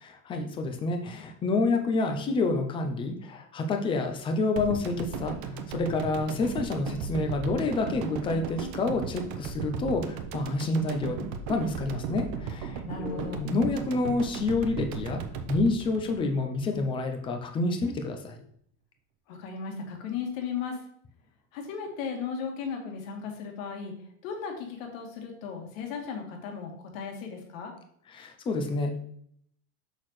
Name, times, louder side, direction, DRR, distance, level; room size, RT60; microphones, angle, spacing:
voice 1, 0.0-15.2 15.5-18.4 28.1-29.0, left 3 dB, 15° left, 5 dB, 0.4 m, -28 dB
sound 1, 4.6-16.9 17.2-17.3, right 6 dB, 50° right, 0.8 m, -36 dB
voice 2, 12.9-13.4 19.3-20.8 21.5-23.9 24.2-27.7, left 6 dB, 70° left, 2 dB, 1.7 m, -36 dB
6.4 x 5.9 x 3.1 m, 0.66 s
supercardioid pair, 150°, 42 cm